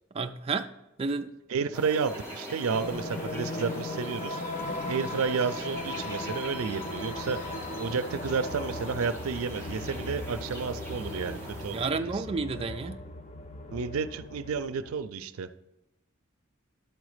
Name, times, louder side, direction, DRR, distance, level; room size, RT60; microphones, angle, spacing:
voice 1, 0.1-0.7 1.0-1.3 11.7-13.0, right 4 dB, 30° right, 0.4 m, -31 dB
voice 2, 1.5-4.4 4.8-7.4 7.8-12.2 13.7-15.5, right 5 dB, 85° right, 0.5 m, -31 dB
sound 1, 1.7-11.9, equal, 10° left, 1.5 m, -42 dB
sound 2, 2.7-14.9, left 2 dB, 30° left, 0.6 m, -38 dB
11.5 x 4.0 x 4.9 m
head